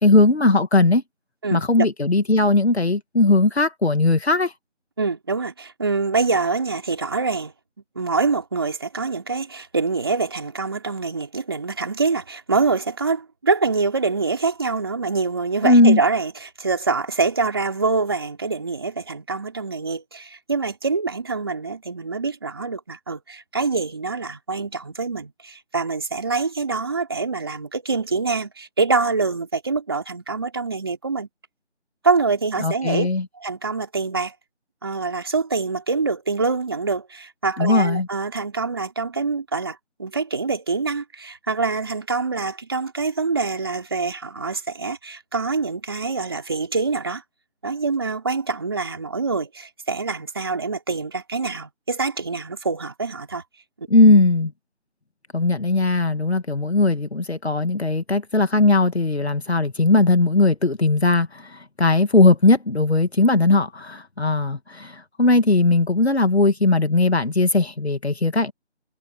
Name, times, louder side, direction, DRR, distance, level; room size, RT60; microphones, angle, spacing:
voice 1, 0.0-1.0 1.5-4.5 15.6-16.0 32.6-33.3 37.6-38.1 53.9-54.5 55.3-68.5, left 2 dB, 60° left, 2.5 m, -18 dB
voice 2, 1.4-1.9 5.0-7.5 8.0-31.3 32.0-33.1 33.4-34.3 34.8-47.2 47.6-53.4 53.8-53.9, right 4 dB, 20° right, 3.4 m, -25 dB
figure-of-eight pair, 175°, 36 cm